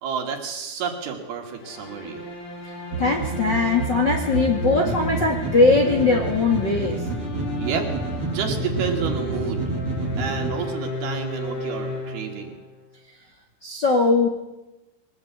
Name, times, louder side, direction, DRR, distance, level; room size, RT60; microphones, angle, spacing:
voice 1, 0.0-2.2 7.6-7.9 8.3-9.6 10.2-12.6, right 6 dB, 65° right, 3 dB, 4.2 m, -30 dB
sound 1, 1.6-12.7, left 1 dB, 75° left, 8.1 m, -34 dB
sound 2, 2.9-10.5, right 3 dB, 35° right, 3.2 m, -29 dB
voice 2, 3.0-7.0 13.6-14.3, left 3 dB, 40° left, 2 dB, 1.8 m, -20 dB
22.5 x 19.0 x 8.2 m, 1.0 s
omnidirectional pair, 4.8 m